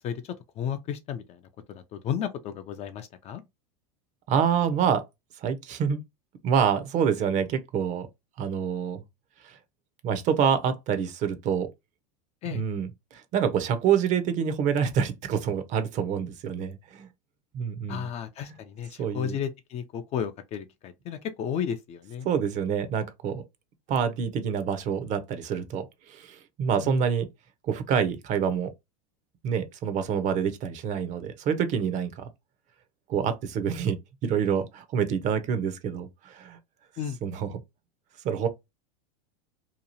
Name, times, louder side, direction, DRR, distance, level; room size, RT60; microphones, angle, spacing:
voice 1, 0.0-1.4 1.7-3.4 12.4-12.6 17.9-22.3 26.8-27.0 37.0-37.2, left 8 dB, 35° left, 0.4 m, -33 dB
voice 2, 4.3-5.0 5.4-6.0 6.4-8.1 8.4-9.0 9.4-9.6 10.0-11.7 12.4-17.1 17.5-18.1 19.0-19.4 22.2-23.4 23.9-27.3 27.6-28.7 29.4-32.3 33.1-34.0 34.2-36.6 37.2-37.6 38.2-38.5, right 7 dB, 40° right, 0.6 m, -27 dB
2.9 x 2.3 x 2.7 m
supercardioid pair, 120°, 20 cm